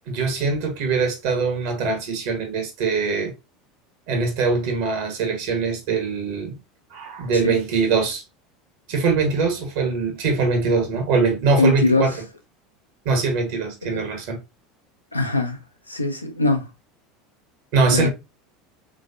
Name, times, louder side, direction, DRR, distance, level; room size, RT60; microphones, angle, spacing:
voice 1, 0.1-3.3 4.1-6.6 6.9-8.2 8.9-12.2 13.0-14.4 17.7-18.1, right 4 dB, 55° right, 1.1 m, -22 dB
voice 2, 11.6-12.1 13.8-14.1 15.1-15.6 15.9-16.6 17.9-18.1, left 3 dB, 85° left, 0.5 m, -21 dB
3.3 x 3.1 x 2.6 m
figure-of-eight pair, 75°, 0 cm